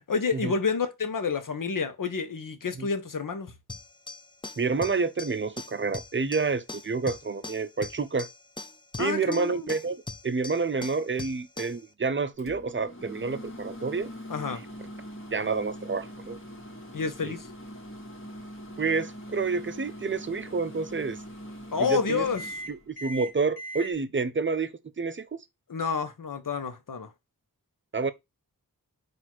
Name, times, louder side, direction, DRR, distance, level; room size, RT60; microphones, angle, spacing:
voice 1, 0.1-3.5 9.0-9.7 14.3-14.6 16.9-17.5 21.7-22.6 25.7-27.1, left 5 dB, 60° left, 0.9 m, -29 dB
sound 1, 3.7-11.9, left 3 dB, 15° left, 0.5 m, -42 dB
voice 2, 4.6-8.3 9.0-10.0 10.2-14.1 14.5-14.6 15.3-16.4 17.2-17.3 18.8-21.2 21.9-22.3 22.7-25.4 27.9-28.1, right 4 dB, 35° right, 0.6 m, -29 dB
Microwave oven, 12.4-23.9, equal, 35° left, 1.6 m, -42 dB
4.1 x 2.6 x 4.5 m
cardioid pair, 45°, 37 cm